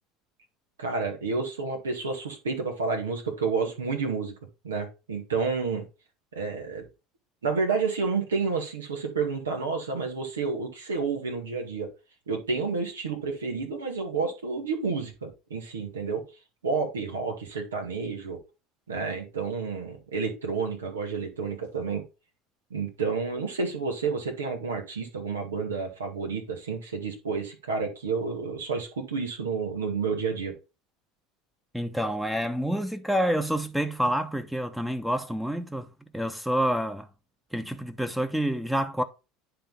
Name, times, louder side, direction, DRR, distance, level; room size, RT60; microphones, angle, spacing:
voice 1, 0.8-4.3 4.6-5.8 6.3-6.8 7.4-11.9 12.3-16.2 16.6-18.4 18.9-22.0 22.7-30.5, right 4 dB, 85° right, 2.1 m, -30 dB
voice 2, 31.7-37.1 37.5-39.0, equal, 5° right, 0.9 m, -28 dB
10.0 x 3.8 x 3.8 m
hypercardioid pair, 75°, 0 cm